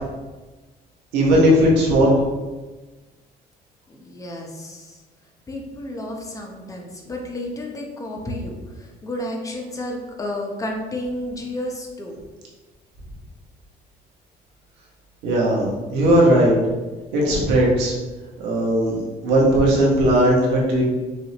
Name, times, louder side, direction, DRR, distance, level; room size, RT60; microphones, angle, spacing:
voice 1, 1.1-2.2 15.2-16.6 17.1-17.9 18.4-19.0 19.2-20.8, right 1 dB, 90° right, -3 dB, 1.4 m, -17 dB
voice 2, 3.9-5.0 5.5-12.2, left 1 dB, 20° left, 0 dB, 0.9 m, -31 dB
6.2 x 2.7 x 3.0 m, 1.2 s
cardioid pair, 110°, 17 cm